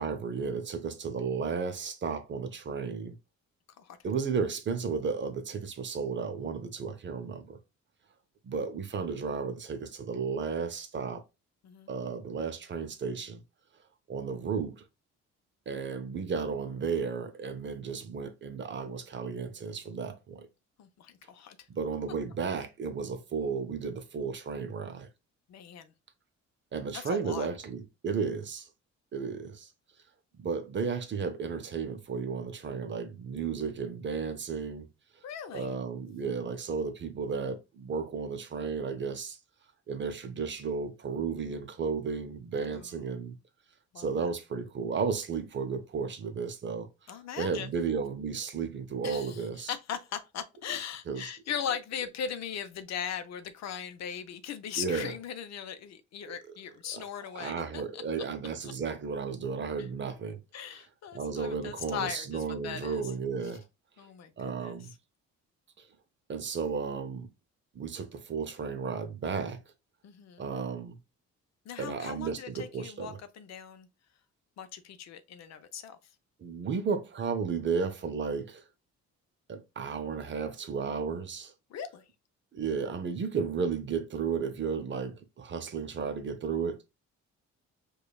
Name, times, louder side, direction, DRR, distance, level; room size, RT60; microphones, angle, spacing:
voice 1, 0.0-3.2 4.0-7.6 8.4-11.2 11.9-13.4 14.1-14.8 15.7-20.5 21.7-25.1 26.7-28.7 29.1-29.7 30.4-34.9 35.5-39.4 39.9-43.4 44.0-49.7 51.1-51.3 54.8-55.1 56.3-56.4 56.9-57.0 57.3-60.4 60.7-60.8 61.1-63.6 64.4-64.9 65.8-65.9 66.3-67.3 67.7-69.6 70.4-71.0 71.8-73.2 76.4-78.6 79.5-81.5 82.5-86.8, right 5 dB, 40° right, 0.6 m, -33 dB
voice 2, 20.8-21.6 25.5-25.9 26.9-27.5 35.2-35.7 42.7-42.8 43.9-44.1 47.1-47.7 49.0-58.0 60.5-63.0 64.0-64.8 70.0-70.4 71.7-73.9 74.6-76.0 81.7-82.1, left 8 dB, 65° left, 0.6 m, -39 dB
4.9 x 2.3 x 2.3 m
cardioid pair, 90°, 29 cm